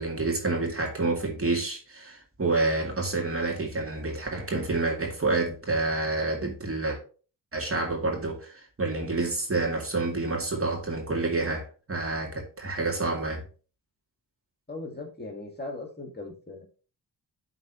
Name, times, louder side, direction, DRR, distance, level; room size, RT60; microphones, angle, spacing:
voice 1, 0.0-7.0 7.5-13.4, right 3 dB, 30° right, 2.3 m, -28 dB
voice 2, 14.7-16.6, left 2 dB, 25° left, 1.9 m, -38 dB
11.0 x 3.9 x 2.9 m
cardioid pair, 70°, 41 cm